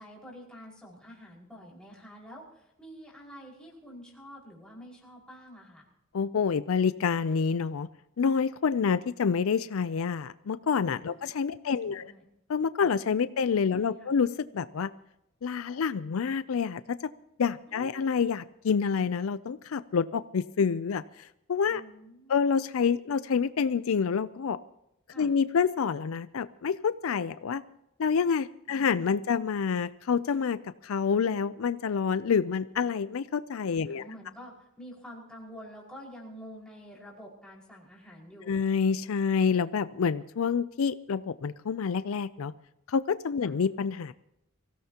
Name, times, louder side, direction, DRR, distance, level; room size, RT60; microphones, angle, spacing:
voice 1, 0.0-5.9 11.0-11.3 11.6-12.2 13.2-13.5 13.7-14.1 17.7-18.1 21.7-22.4 25.1-25.3 33.8-38.6 43.4-43.5, equal, 5° left, -4 dB, 5.1 m, -48 dB
voice 2, 6.1-7.9 8.2-12.1 12.5-14.9 15.4-17.0 17.4-21.0 21.5-21.8 22.3-24.6 25.2-27.6 28.0-30.6 30.8-34.0 38.5-42.5 42.9-44.1, left 6 dB, 70° left, 15 dB, 0.4 m, -27 dB
24.5 x 16.5 x 2.9 m, 0.84 s
head